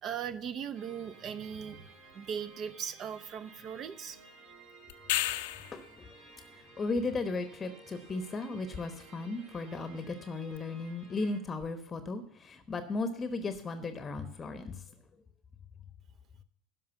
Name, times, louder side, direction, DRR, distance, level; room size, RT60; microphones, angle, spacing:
voice 1, 0.0-4.2 9.7-9.8, right 8 dB, 40° right, 13 dB, 0.8 m, -39 dB
sound 1, 0.7-11.4, right 3 dB, 60° right, 4.2 m, -55 dB
sound 2, 4.9-5.9 10.5-10.6, left 16 dB, 60° left, 0.6 m, -31 dB
voice 2, 6.5-14.8, left 3 dB, 25° left, 10 dB, 1.0 m, -36 dB
12.5 x 5.3 x 8.2 m, 0.64 s
figure-of-eight pair, 75°, 0 cm